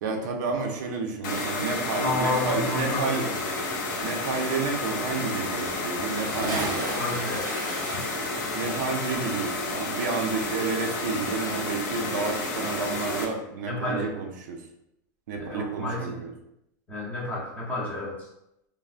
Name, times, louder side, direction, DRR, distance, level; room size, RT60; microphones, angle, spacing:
voice 1, 0.0-3.2 4.0-6.9 8.6-14.6 15.3-16.3, right 4 dB, 65° right, 3 dB, 0.5 m, -30 dB
sound 1, 1.2-13.3, left 2 dB, 65° left, 0.6 m, -31 dB
voice 2, 2.0-3.4 6.8-7.5 13.7-14.1 15.4-16.2 16.9-18.3, left 2 dB, 15° left, -4 dB, 0.6 m, -30 dB
Bathtub (filling or washing) / Splash splatter, 6.1-11.1 11.3-11.4, right 2 dB, 30° right, 0.7 m, -36 dB
3.2 x 2.0 x 2.4 m, 0.83 s
supercardioid pair, 165°, 10 cm